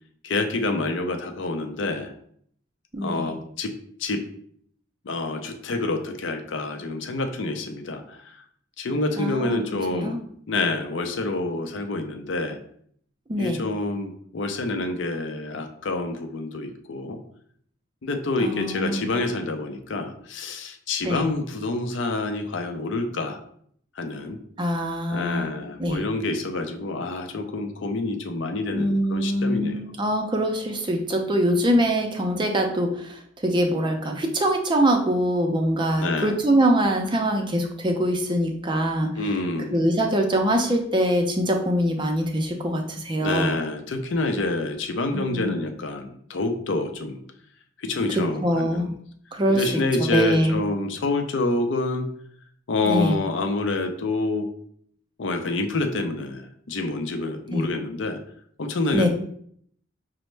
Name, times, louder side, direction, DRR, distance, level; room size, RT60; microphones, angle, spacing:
voice 1, 0.2-2.1 3.0-4.2 5.0-8.4 8.8-10.2 10.5-12.6 13.4-17.2 18.0-23.4 24.0-24.4 25.1-30.0 36.0-36.4 39.2-39.8 43.2-47.2 47.8-48.9 49.5-52.1 52.7-54.5 55.2-58.2 58.6-59.1, left 2 dB, 70° left, 6 dB, 0.5 m, -27 dB
voice 2, 2.9-3.3 9.2-10.2 13.3-13.6 18.4-19.1 21.0-21.2 24.6-25.5 25.8-26.0 28.7-32.9 33.4-39.1 39.7-43.6 45.1-45.5 48.4-48.9 49.3-49.6 50.1-50.5 52.9-53.1 57.5-57.7 58.9-59.1, equal, 25° right, 3 dB, 0.4 m, -23 dB
5.2 x 2.0 x 3.2 m, 0.64 s
head